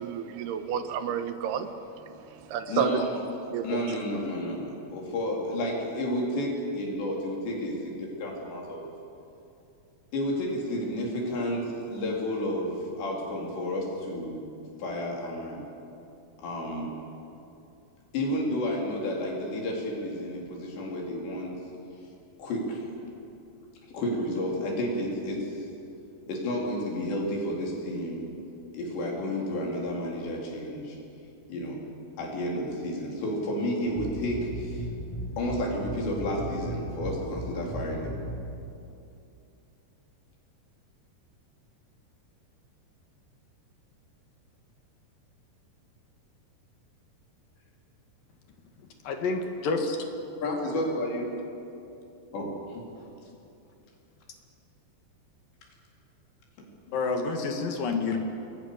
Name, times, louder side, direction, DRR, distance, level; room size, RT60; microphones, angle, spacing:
voice 1, 0.0-1.7 2.5-3.0 3.5-3.8, right 8 dB, 80° right, 9 dB, 2.9 m, -30 dB
voice 2, 2.7-3.1 3.6-8.9 10.1-14.4 14.8-15.7 16.4-16.9 18.1-21.6 22.4-22.9 23.9-25.7 26.3-28.3 28.7-31.0 31.5-31.8 32.2-34.9 35.4-38.2 50.4-51.3 52.3-52.8 56.6-56.7, left 1 dB, 85° left, -1 dB, 6.3 m, -31 dB
sound 1, 33.9-38.5, equal, 5° left, 6.0 m, -36 dB
voice 3, 49.0-50.0 56.9-58.2, left 4 dB, 60° left, 4 dB, 3.5 m, -28 dB
28.5 x 21.5 x 6.9 m, 2.7 s
omnidirectional pair, 4.9 m